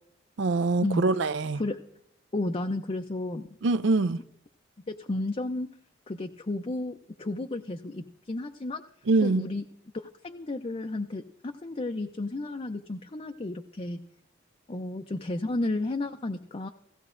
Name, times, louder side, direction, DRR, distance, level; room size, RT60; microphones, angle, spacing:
voice 1, 0.4-1.6 3.6-4.2 9.1-9.5, right 3 dB, 65° right, 0.4 m, -24 dB
voice 2, 2.3-3.5 4.9-5.7 6.1-8.8 9.2-9.6 9.9-14.0 14.7-16.7, left 2 dB, 30° left, 0.5 m, -32 dB
16.5 x 16.0 x 2.5 m
head